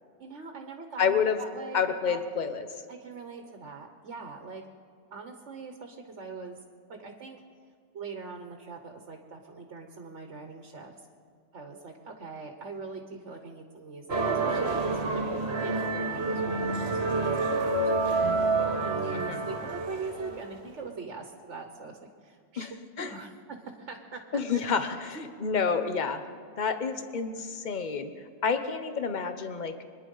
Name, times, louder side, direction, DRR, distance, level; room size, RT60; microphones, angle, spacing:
voice 1, 0.2-2.2 2.9-4.6 5.1-6.6 6.9-7.4 7.9-10.9 11.5-22.7 23.0-23.3 23.8-25.3, right 4 dB, 85° right, 4 dB, 1.5 m, -42 dB
voice 2, 1.0-1.4 1.7-2.7 19.1-19.4 22.6-22.7 23.0-23.1 24.3-26.2 26.6-28.1 28.4-29.8, left 6 dB, 45° left, 8 dB, 1.1 m, -29 dB
sound 1, 14.1-20.6, right 3 dB, 65° right, 1.6 m, -28 dB
24.5 x 10.5 x 5.5 m, 2.2 s
omnidirectional pair, 1.2 m